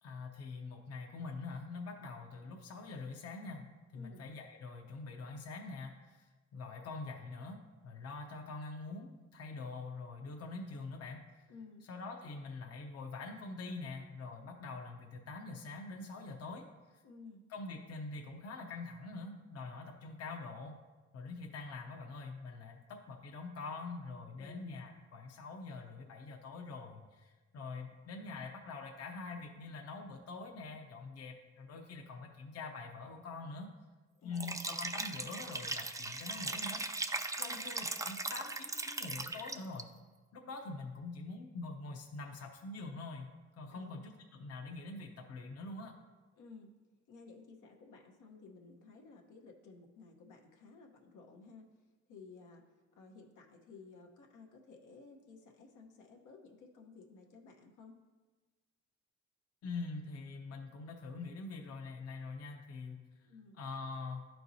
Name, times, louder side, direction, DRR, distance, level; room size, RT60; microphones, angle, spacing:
voice 1, 0.0-6.3 6.5-11.5 11.9-16.7 17.5-20.8 21.1-33.7 34.2-36.8 37.3-39.9 40.3-43.3 43.6-45.9 59.6-63.0 63.6-64.3, left 3 dB, 55° left, 3 dB, 0.8 m, -45 dB
voice 2, 11.5-11.9 17.0-17.4 24.4-24.8 34.1-34.5 37.4-37.7 43.7-44.0 46.3-46.7 47.1-51.6 52.1-52.6 52.9-58.0 63.2-63.6, left 4 dB, 80° left, 1 dB, 1.0 m, -55 dB
Liquid, 34.3-39.8, right 2 dB, 10° right, 0.3 m, -39 dB
11.0 x 4.5 x 2.7 m, 1.3 s
cardioid pair, 90°, 30 cm